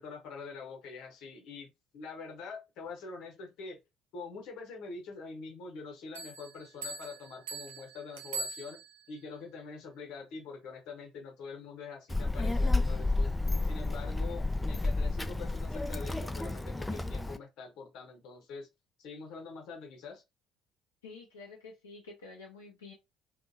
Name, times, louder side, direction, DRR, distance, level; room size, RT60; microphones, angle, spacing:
voice 1, 0.0-3.8 4.1-13.3 13.6-18.7 19.0-20.2, left 4 dB, 55° left, 0.9 m, -45 dB
Bell, 6.1-9.2, right 3 dB, 70° right, 0.4 m, -42 dB
Child speech kid speaking, 12.1-17.4, left 2 dB, 10° left, 0.3 m, -31 dB
voice 2, 21.0-22.9, left 3 dB, 75° left, 0.7 m, -49 dB
2.7 x 2.2 x 2.6 m
figure-of-eight pair, 55°, 0 cm